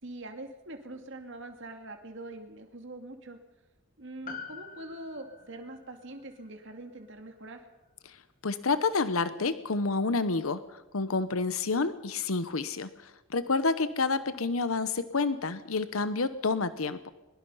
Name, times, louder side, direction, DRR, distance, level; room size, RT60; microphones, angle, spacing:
voice 1, 0.0-3.4 4.0-7.6, right 2 dB, 60° right, 5 dB, 2.4 m, -43 dB
Piano, 4.3-8.9 9.1-9.2, left 5 dB, 40° left, 1.7 m, -48 dB
voice 2, 8.4-17.1, left 4 dB, 85° left, 13 dB, 0.9 m, -29 dB
22.0 x 22.0 x 5.6 m, 1.0 s
head